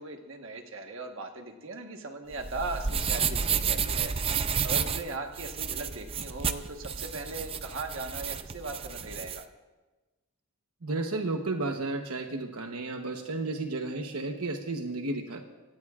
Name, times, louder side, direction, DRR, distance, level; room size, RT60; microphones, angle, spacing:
voice 1, 0.0-9.4, right 3 dB, 60° right, 3 dB, 1.3 m, -39 dB
sound 1, 2.3-9.4, right 6 dB, 25° right, 0.5 m, -31 dB
voice 2, 10.8-15.4, right 2 dB, 80° right, 4 dB, 1.0 m, -32 dB
25.5 x 17.5 x 2.5 m, 1.2 s
head